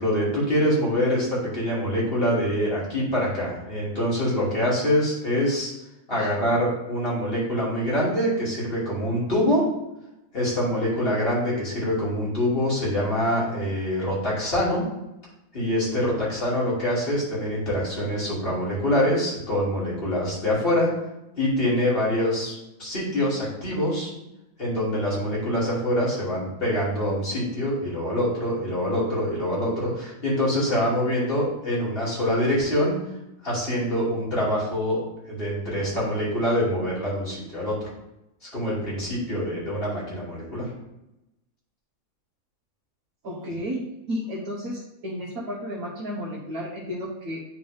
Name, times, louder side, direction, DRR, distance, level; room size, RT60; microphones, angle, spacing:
voice 1, 0.0-5.7 6.1-9.6 10.3-14.8 15.5-20.9 21.4-24.1 24.6-33.0 33.4-35.0 35.3-37.9 38.4-40.7, equal, 40° left, -7 dB, 2.7 m, -25 dB
voice 2, 6.1-6.5 23.7-24.1 43.2-43.8 44.1-47.4, equal, 70° right, -4 dB, 1.5 m, -33 dB
9.8 x 4.0 x 3.3 m, 0.91 s
omnidirectional pair, 1.6 m